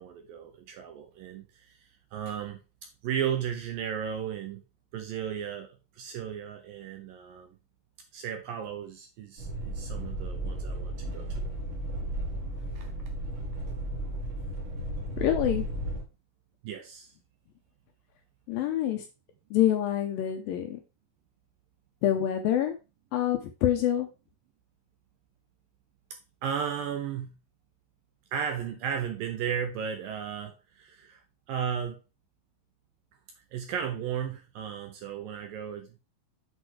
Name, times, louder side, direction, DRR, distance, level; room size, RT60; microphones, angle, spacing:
voice 1, 0.0-1.8 2.1-2.6 3.0-4.6 4.9-7.5 8.1-11.5 12.7-12.9 16.6-17.1 26.4-27.4 28.3-31.2 31.5-32.0 33.5-35.9, right 8 dB, 75° right, 2.1 m, -35 dB
sound 1, 9.4-16.0, right 1 dB, 40° right, 2.2 m, -34 dB
voice 2, 15.2-15.7 18.5-19.0 19.5-20.8 22.0-22.7 23.1-24.1, left 11 dB, 75° left, 2.2 m, -26 dB
8.1 x 4.3 x 4.7 m
omnidirectional pair, 4.8 m